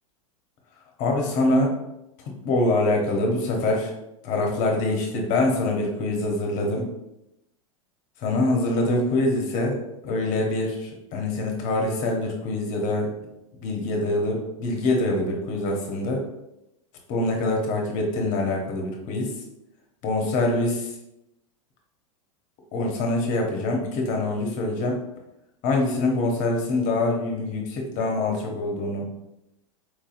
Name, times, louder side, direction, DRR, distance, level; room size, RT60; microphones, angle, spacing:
voice 1, 1.0-1.7 2.4-3.9 4.2-6.9 8.2-9.8 10.0-13.1 13.6-16.2 17.1-19.3 20.0-20.9 22.7-25.0 25.6-29.1, left 2 dB, 45° left, 1 dB, 0.8 m, -24 dB
4.3 x 2.7 x 2.5 m, 0.87 s
hypercardioid pair, 115°, 18 cm